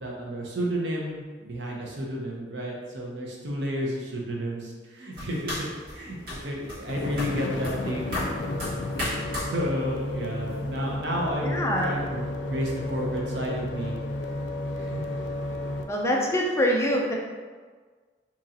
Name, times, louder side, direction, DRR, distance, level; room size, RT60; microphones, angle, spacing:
voice 1, 0.0-8.1 9.4-12.2 12.5-14.0 14.7-15.0, equal, 70° right, -2 dB, 0.7 m, -31 dB
sound 1, 5.1-10.9, left 1 dB, 55° right, 1.5 m, -36 dB
sound 2, 6.9-15.9, left 1 dB, 80° left, 0.4 m, -32 dB
voice 2, 11.4-12.0 15.9-17.1, equal, 15° left, -1 dB, 0.4 m, -24 dB
3.0 x 2.7 x 3.8 m, 1.5 s
head